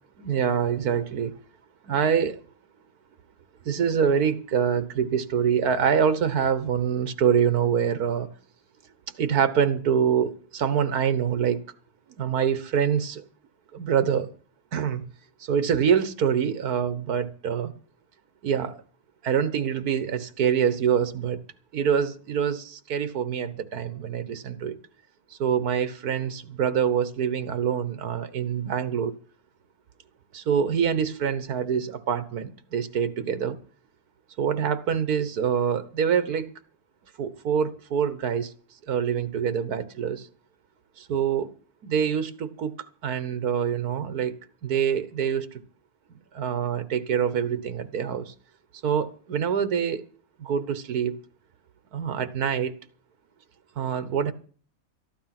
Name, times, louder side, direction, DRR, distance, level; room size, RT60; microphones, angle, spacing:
voice 1, 0.2-1.3 1.8-2.4 3.7-8.3 9.2-11.6 12.2-13.2 13.7-14.3 14.7-15.0 15.4-17.7 18.4-18.8 19.2-21.4 21.7-24.8 25.4-29.1 30.3-33.6 34.4-36.5 37.2-38.5 38.9-40.3 41.0-41.5 41.8-42.8 43.0-45.5 46.3-48.3 48.8-50.0 50.4-51.2 51.9-52.8 53.8-54.3, right 7 dB, 90° right, 1.7 m, -25 dB
14.0 x 12.0 x 5.9 m
omnidirectional pair, 1.6 m